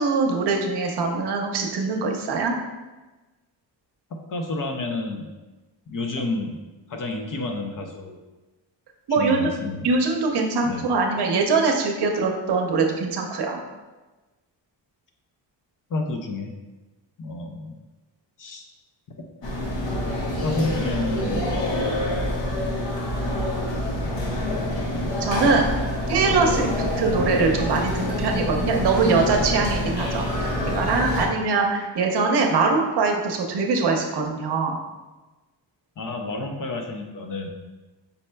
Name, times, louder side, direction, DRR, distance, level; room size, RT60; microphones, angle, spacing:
voice 1, 0.0-2.5 9.1-9.5 9.8-13.6 25.2-25.7 26.1-34.8, right 4 dB, 60° right, 2 dB, 0.7 m, -22 dB
voice 2, 4.3-5.3 5.9-6.6 6.9-8.2 9.1-9.9 10.6-10.8 15.9-16.5 17.2-17.8 18.4-18.7 20.4-21.5 26.7-26.8 31.2-31.3 36.0-37.5, left 2 dB, 45° left, 4 dB, 0.5 m, -30 dB
sound 1, 19.4-31.3, left 1 dB, 70° left, 1.1 m, -26 dB
5.4 x 4.2 x 2.2 m, 1.2 s
wide cardioid pair, 160°, 46 cm